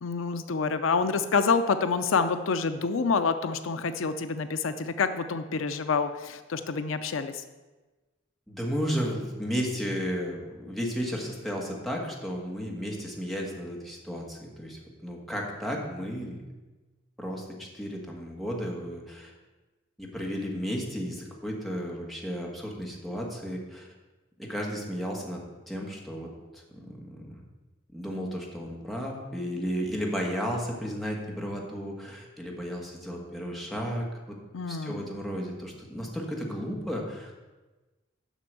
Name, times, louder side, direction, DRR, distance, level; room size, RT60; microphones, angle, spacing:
voice 1, 0.0-7.4 34.5-35.1, left 5 dB, 80° left, 10 dB, 0.5 m, -27 dB
voice 2, 8.5-16.4 17.2-19.3 20.0-23.9 24.4-25.4 25.7-26.3 26.5-27.4 27.9-34.4 34.7-37.3, equal, ahead, -2 dB, 1.7 m, -33 dB
8.1 x 6.0 x 7.6 m, 1.2 s
head